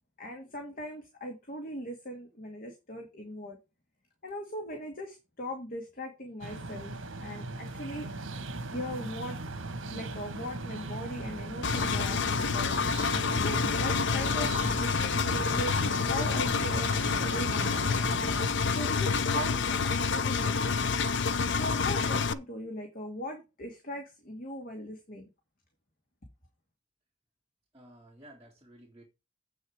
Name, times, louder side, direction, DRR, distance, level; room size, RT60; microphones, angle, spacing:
voice 1, 0.2-3.6 4.2-6.9 7.2-8.1 8.7-9.4 9.9-12.7 13.3-16.9 17.2-17.9 18.7-20.8 21.5-25.3, equal, 45° left, 2.2 m, -39 dB
sound 1, 6.4-18.5, right 2 dB, 85° right, 1.6 m, -39 dB
Engine, 11.6-22.3, left 5 dB, 65° left, 0.6 m, -28 dB
voice 2, 27.7-29.0, right 1 dB, 15° right, 3.3 m, -53 dB
8.4 x 6.6 x 4.8 m
head